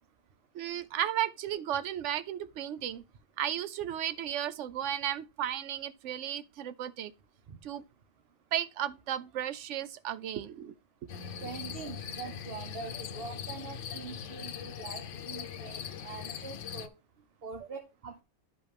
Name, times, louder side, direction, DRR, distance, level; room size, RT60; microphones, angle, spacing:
voice 1, 0.5-3.0 3.4-7.1 7.6-7.8 8.5-10.7, right 11 dB, 80° right, 0.9 m, -34 dB
sound 1, 11.1-16.9, left 8 dB, 85° left, 1.0 m, -41 dB
voice 2, 11.4-16.9 17.4-18.2, right 5 dB, 55° right, 1.1 m, -44 dB
9.7 x 5.2 x 3.3 m
omnidirectional pair, 1.2 m